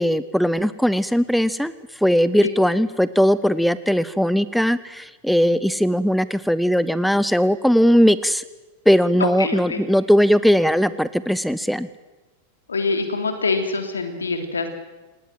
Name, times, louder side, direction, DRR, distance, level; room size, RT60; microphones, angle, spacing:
voice 1, 0.0-8.4 8.9-11.9, equal, ahead, 17 dB, 0.8 m, -19 dB
voice 2, 9.2-9.8 12.7-14.7, left 4 dB, 80° left, 7 dB, 3.3 m, -24 dB
27.0 x 19.5 x 7.7 m, 1.2 s
figure-of-eight pair, 90°, 0 cm